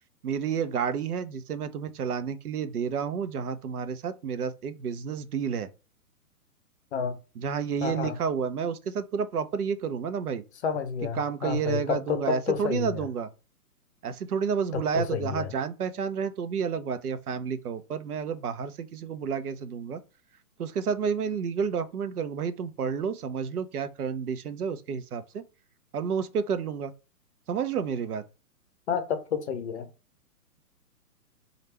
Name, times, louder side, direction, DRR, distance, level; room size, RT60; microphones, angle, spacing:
voice 1, 0.2-5.7 7.4-10.4 11.2-13.3 14.0-20.0 20.6-25.4 25.9-26.9 27.5-28.2, right 6 dB, 70° right, 0.7 m, -30 dB
voice 2, 7.8-8.2 10.6-13.1 14.7-15.5 28.9-29.9, left 6 dB, 45° left, 0.7 m, -30 dB
3.2 x 2.4 x 4.3 m
hypercardioid pair, 130°, 47 cm